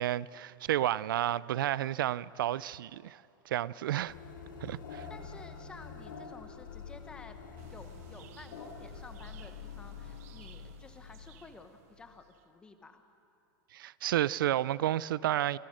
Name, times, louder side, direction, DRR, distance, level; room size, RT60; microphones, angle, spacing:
voice 1, 0.0-4.2 4.6-5.1 13.7-15.6, right 13 dB, 90° right, 0.4 m, -31 dB
sound 1, 4.1-12.0, left 6 dB, 75° left, 3.1 m, -46 dB
voice 2, 5.1-7.4 7.6-13.0, left 3 dB, 10° left, 0.9 m, -52 dB
sound 2, 7.6-12.5, right 14 dB, 45° right, 0.6 m, -56 dB
26.0 x 16.0 x 6.4 m
supercardioid pair, 175°, 11 cm